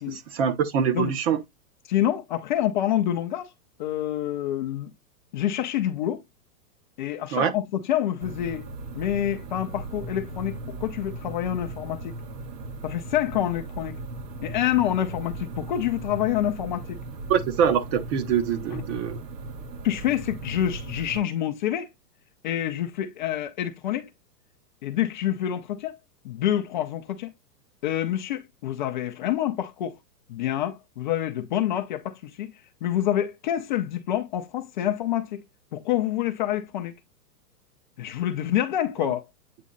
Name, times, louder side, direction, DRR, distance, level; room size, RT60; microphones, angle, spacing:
voice 1, 0.1-1.4 7.3-7.5 17.3-19.2, right 8 dB, 40° right, 1.1 m, -24 dB
voice 2, 1.9-3.5 3.8-4.9 5.3-6.2 7.0-8.6 8.9-12.1 12.8-14.0 14.4-17.0 18.7-18.8 19.8-21.9 22.4-24.1 24.8-25.9 26.2-27.3 27.8-30.0 30.3-32.5 32.8-35.4 35.7-36.9 38.0-39.2, left 11 dB, 30° left, 0.5 m, -27 dB
sound 1, 8.2-21.2, right 2 dB, 80° right, 1.8 m, -37 dB
8.4 x 3.0 x 3.8 m
hypercardioid pair, 150°, 48 cm